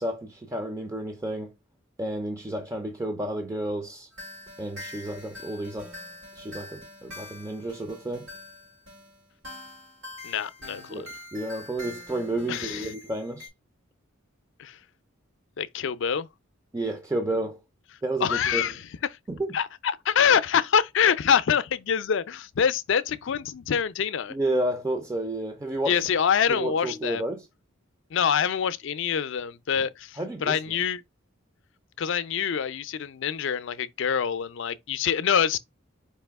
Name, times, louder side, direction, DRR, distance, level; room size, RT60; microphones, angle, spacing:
voice 1, 0.0-1.5 2.0-4.1 4.6-5.9 6.4-8.3 10.9-13.5 16.7-17.6 18.0-18.7 19.3-19.6 24.3-26.0 26.5-27.5 29.8-29.9 30.2-30.6, right 1 dB, 15° right, 0.4 m, -31 dB
sound 1, 4.1-13.5, left 2 dB, 90° right, 3.4 m, -44 dB
voice 2, 10.2-11.1 12.5-12.9 14.6-14.8 15.6-16.3 18.2-18.8 19.5-24.4 25.9-27.2 28.1-31.0 32.0-35.6, left 7 dB, 65° left, 0.4 m, -25 dB
4.7 x 2.9 x 3.4 m
head